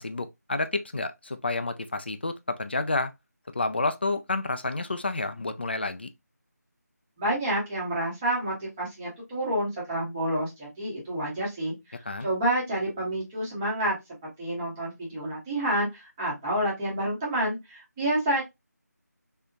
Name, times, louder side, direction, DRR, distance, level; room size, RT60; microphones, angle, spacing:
voice 1, 0.0-3.1 3.5-6.1 12.1-12.3, left 2 dB, 35° left, 0.3 m, -29 dB
voice 2, 7.2-18.4, right 1 dB, 10° right, 0.7 m, -29 dB
3.4 x 2.7 x 2.5 m
figure-of-eight pair, 165°, 9 cm